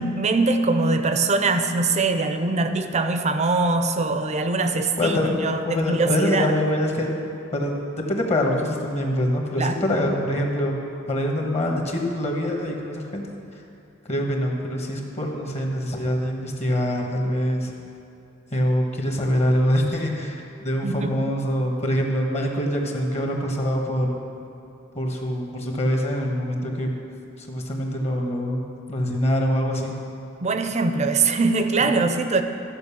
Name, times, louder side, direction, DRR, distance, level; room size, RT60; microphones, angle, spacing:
voice 1, 0.0-6.5 9.6-9.8 20.8-21.3 30.4-32.4, right 3 dB, 35° right, 8 dB, 0.6 m, -22 dB
voice 2, 4.7-5.3 5.6-7.1 7.5-7.7 8.1-10.8 11.1-13.3 14.0-17.7 18.5-24.1 24.9-26.9 27.4-30.0 31.9-32.1, equal, 35° left, 1 dB, 1.4 m, -24 dB
13.5 x 5.3 x 7.1 m, 2.6 s
head